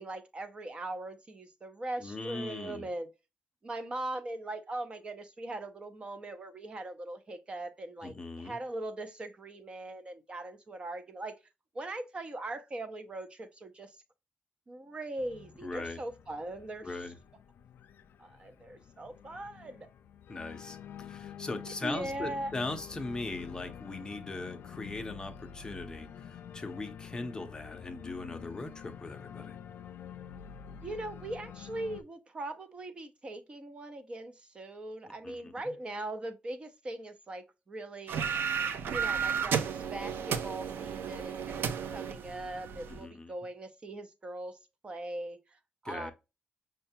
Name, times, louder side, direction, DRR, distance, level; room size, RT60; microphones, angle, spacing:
voice 1, 0.0-3.1 3.6-11.4 11.7-14.0 14.7-17.0 18.2-19.9 21.6-22.5 30.8-38.5 38.9-46.1, right 2 dB, 30° right, 0.5 m, -40 dB
voice 2, 2.0-2.9 8.0-8.6 15.6-16.0 16.8-17.2 20.3-29.6 35.0-35.7 42.9-43.3 45.8-46.1, left 2 dB, 20° left, 0.5 m, -40 dB
Organ, 15.2-32.0, left 8 dB, 85° left, 0.4 m, -48 dB
sound 1, 38.1-43.0, right 7 dB, 85° right, 0.5 m, -33 dB
5.6 x 2.2 x 2.7 m
wide cardioid pair, 170°, 4 cm